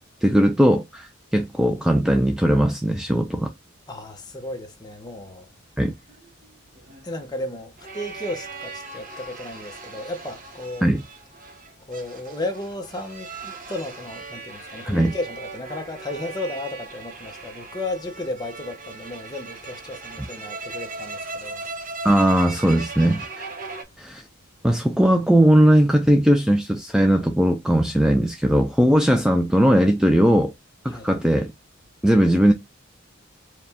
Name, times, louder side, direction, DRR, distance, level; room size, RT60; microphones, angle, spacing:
voice 1, 0.2-3.5 5.8-5.9 10.8-11.0 14.8-15.1 22.0-23.4 24.0-24.2 24.6-30.5 30.8-31.5 32.0-32.5, equal, 5° right, 0.3 m, -18 dB
voice 2, 3.9-5.5 7.0-10.9 11.9-21.7 30.9-31.1, left 2 dB, 20° left, 0.8 m, -34 dB
sound 1, 6.1-23.8, right 3 dB, 40° right, 0.8 m, -38 dB
4.8 x 2.3 x 3.4 m
head